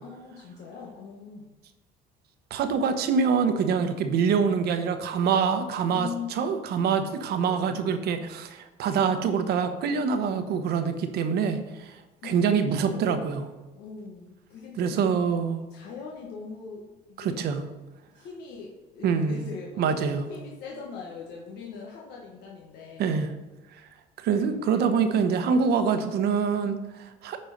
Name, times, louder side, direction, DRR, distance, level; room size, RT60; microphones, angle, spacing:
voice 1, 0.0-1.5 5.9-6.6 8.9-9.7 12.2-13.4 13.7-15.1 15.7-17.5 18.1-19.9 20.3-23.2 24.4-25.4, left 5 dB, 80° left, -1 dB, 1.3 m, -41 dB
voice 2, 2.5-12.0 12.2-13.4 14.8-15.6 17.2-17.6 19.0-19.4 19.8-20.3 23.0-23.3 24.2-27.4, right 6 dB, 70° right, 8 dB, 1.0 m, -25 dB
9.5 x 4.5 x 5.3 m, 1.1 s
cardioid pair, 110°, 17 cm